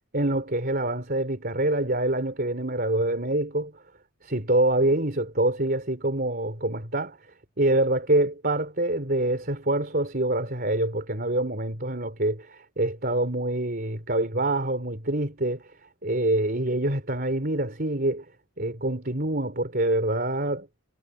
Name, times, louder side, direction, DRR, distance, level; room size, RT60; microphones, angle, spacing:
voice 1, 0.1-3.7 4.2-7.2 7.6-15.6 16.0-18.2 18.6-20.7, right 1 dB, 40° right, 3.9 m, -25 dB
head